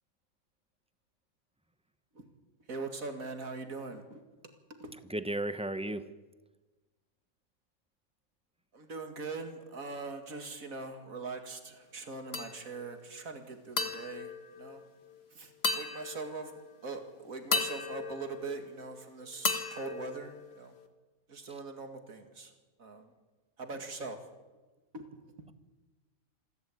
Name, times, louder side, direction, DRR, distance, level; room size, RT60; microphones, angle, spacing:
voice 1, 2.7-4.5 4.8-5.0 8.7-14.8 15.3-20.7 21.3-22.5 22.8-23.1 23.6-24.3 24.9-25.1 25.4-25.5, right 3 dB, 75° right, 6 dB, 2.6 m, -42 dB
voice 2, 5.1-6.0, right 1 dB, 5° right, 11 dB, 0.7 m, -34 dB
sound 1, 12.3-12.9 13.8-15.2 15.6-16.7 17.5-19.0 19.4-20.9, left 4 dB, 50° left, 1.6 m, -36 dB
27.0 x 12.5 x 8.7 m, 1.2 s
omnidirectional pair, 1.5 m